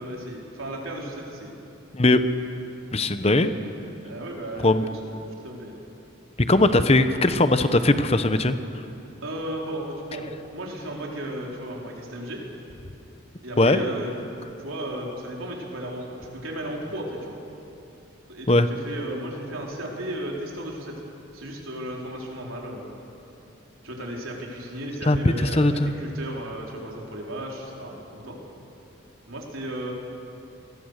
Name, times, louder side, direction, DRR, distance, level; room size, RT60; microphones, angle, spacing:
voice 1, 0.0-1.5 4.0-4.8 5.0-5.8 9.2-12.4 13.4-14.1 14.6-17.4 18.3-21.0 21.3-22.9 23.8-28.4 29.3-29.9, right 1 dB, 90° right, -1 dB, 4.3 m, -34 dB
voice 2, 2.9-3.5 4.6-4.8 6.5-8.5 13.6-13.8 18.5-18.7 25.1-25.9, left 2 dB, 30° left, 10 dB, 0.9 m, -19 dB
28.0 x 21.0 x 6.6 m, 2.8 s
head